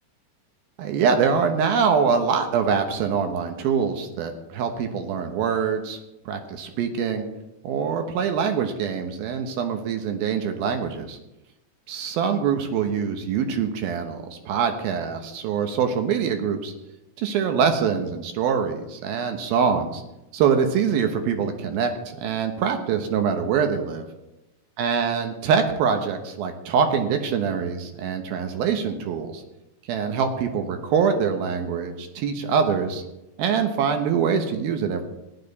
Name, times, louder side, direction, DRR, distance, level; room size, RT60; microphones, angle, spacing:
voice 1, 0.8-6.0 6.3-7.3 7.6-11.2 11.9-16.7 17.2-20.0 20.3-24.1 24.8-29.4 29.9-33.0 33.4-35.0, right 6 dB, 75° right, 6 dB, 2.9 m, -24 dB
15.5 x 10.0 x 4.1 m, 0.94 s
omnidirectional pair, 4.4 m